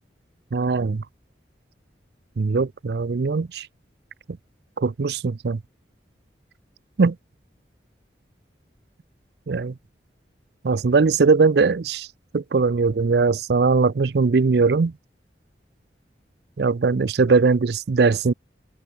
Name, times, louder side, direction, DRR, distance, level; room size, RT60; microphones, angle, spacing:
voice 1, 0.5-1.0 2.4-3.7 4.8-5.6 7.0-7.2 9.5-9.7 10.6-12.1 12.3-14.9 16.6-18.3, right 4 dB, 65° right, 0.5 m, -20 dB
open air
head